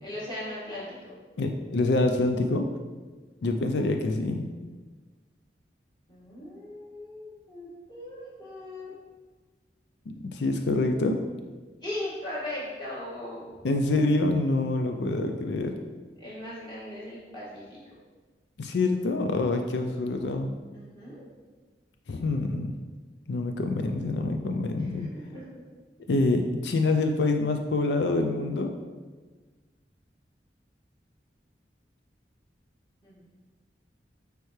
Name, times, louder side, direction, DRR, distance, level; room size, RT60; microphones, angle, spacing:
voice 1, 0.0-1.1 6.1-9.0 11.8-13.6 16.2-17.8 20.7-21.2 24.8-25.6 33.0-33.2, left 1 dB, 25° left, -9 dB, 1.8 m, -38 dB
voice 2, 1.4-2.7 3.4-4.5 10.2-11.2 13.6-15.7 18.6-20.5 22.1-22.7 23.3-25.1 26.1-28.7, left 2 dB, 80° left, 5 dB, 0.4 m, -26 dB
9.0 x 3.4 x 3.2 m, 1.4 s
head